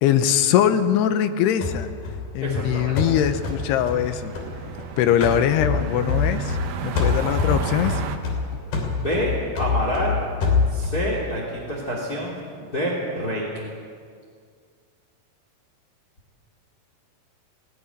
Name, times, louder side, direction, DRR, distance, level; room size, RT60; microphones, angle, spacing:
voice 1, 0.0-1.9 2.3-4.3 5.0-6.6 6.8-8.0, left 10 dB, 85° left, 9 dB, 2.9 m, -21 dB
sound 1, 1.6-4.9 5.2-6.7 7.0-11.1, left 5 dB, 65° left, 5.0 m, -25 dB
voice 2, 2.4-3.0 8.9-10.2 10.7-13.5, equal, 25° left, -2 dB, 3.4 m, -27 dB
sound 2, 2.5-8.2, right 7 dB, 70° right, 2.9 m, -33 dB
18.5 x 16.5 x 9.6 m, 2.1 s
omnidirectional pair, 4.8 m